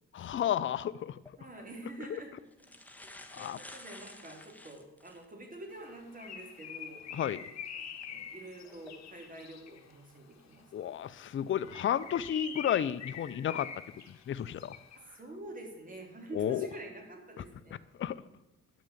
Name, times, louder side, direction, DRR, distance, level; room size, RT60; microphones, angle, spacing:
voice 1, 0.1-1.2 2.1-2.2 3.3-3.6 7.1-7.4 10.7-13.7 14.3-14.8 16.3-16.7 18.0-18.2, left 10 dB, 40° left, 14 dB, 0.6 m, -32 dB
sound 1, 1.1-1.3 2.2-2.3 2.5-5.3 5.9-6.0 7.8-8.0 8.6-8.9, left 1 dB, 5° left, 1.3 m, -51 dB
voice 2, 1.4-2.3 3.0-7.0 7.7-10.7 15.1-17.8, right 1 dB, 25° right, 1 dB, 3.3 m, -47 dB
Bird, 5.8-9.9 11.5-15.0, left 8 dB, 60° left, 1.3 m, -45 dB
10.5 x 6.2 x 8.4 m, 0.95 s
cardioid pair, 90°, 30 cm